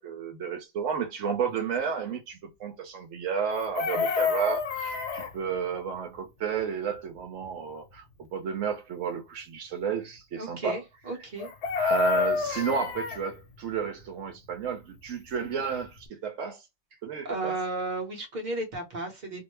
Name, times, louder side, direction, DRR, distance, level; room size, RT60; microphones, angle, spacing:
voice 1, 0.0-10.8 11.8-16.6 17.0-17.5, right 5 dB, 80° right, 1.0 m, -32 dB
Chicken rooster, 3.5-5.3 11.4-13.2 15.4-15.5 15.8-16.1, left 5 dB, 65° left, 0.9 m, -28 dB
voice 2, 10.4-11.5 17.2-19.4, right 2 dB, 40° right, 1.1 m, -34 dB
2.7 x 2.1 x 3.1 m
omnidirectional pair, 1.3 m